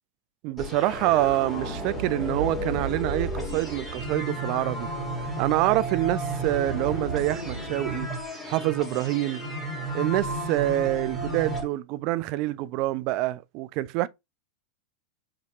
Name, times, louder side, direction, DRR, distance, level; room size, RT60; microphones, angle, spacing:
voice 1, 0.4-4.9 5.4-8.1 8.5-9.4 9.9-14.1, right 16 dB, 40° right, 0.3 m, -26 dB
sound 1, 0.6-11.6, right 1 dB, 5° left, 2.1 m, -32 dB
5.4 x 3.0 x 3.1 m
figure-of-eight pair, 90°, 0 cm